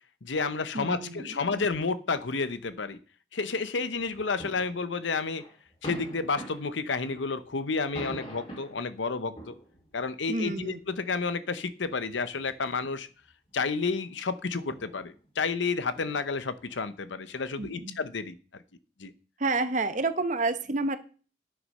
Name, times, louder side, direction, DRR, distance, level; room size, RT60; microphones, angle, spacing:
voice 1, 0.2-3.0 3.3-5.4 5.8-9.5 9.9-13.1 13.5-18.6 19.0-19.1, left 4 dB, 85° left, 13 dB, 0.8 m, -31 dB
voice 2, 0.7-1.7 10.3-10.8 17.6-18.0 19.4-21.0, right 3 dB, 40° right, 11 dB, 0.9 m, -30 dB
sound 1, 3.9-5.0 5.4-8.9 9.4-10.0 10.8-10.9 11.7-12.9 13.3-13.7 14.0-14.1 14.6-17.0, right 1 dB, 35° left, 2.5 m, -44 dB
9.3 x 6.5 x 5.4 m, 0.38 s
head